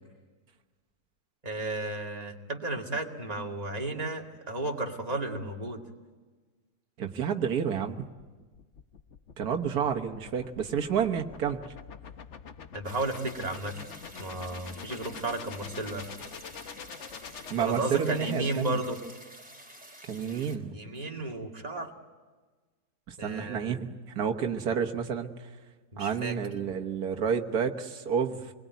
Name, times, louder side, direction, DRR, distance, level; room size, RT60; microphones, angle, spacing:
voice 1, 1.4-5.8 12.7-13.8 14.2-16.0 17.6-19.0 20.6-21.9 23.2-23.8 25.9-26.4, right 2 dB, 25° right, 0 dB, 2.3 m, -33 dB
voice 2, 7.0-8.0 9.4-11.6 17.5-18.8 20.1-20.7 23.2-23.9 24.1-25.3 26.0-28.5, right 7 dB, 90° right, 3 dB, 1.7 m, -30 dB
sound 1, 8.0-18.3, left 6 dB, 55° left, 1.2 m, -46 dB
sound 2, 12.8-20.6, right 1 dB, 5° right, 3.5 m, -50 dB
26.5 x 21.0 x 9.3 m, 1.4 s
omnidirectional pair, 1.6 m